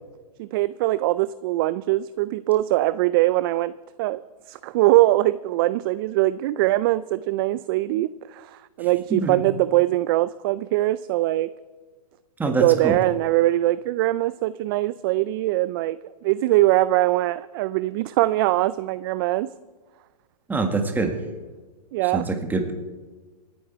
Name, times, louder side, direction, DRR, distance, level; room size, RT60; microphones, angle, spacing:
voice 1, 0.4-3.7 4.0-4.2 4.5-11.5 12.4-19.5 21.9-22.3, right 17 dB, 35° right, 16 dB, 0.3 m, -22 dB
voice 2, 9.1-9.4 12.4-13.0 20.5-21.1 22.1-22.7, right 3 dB, 10° right, 5 dB, 1.8 m, -24 dB
27.0 x 9.6 x 4.6 m, 1.3 s
hypercardioid pair, 130°, 21 cm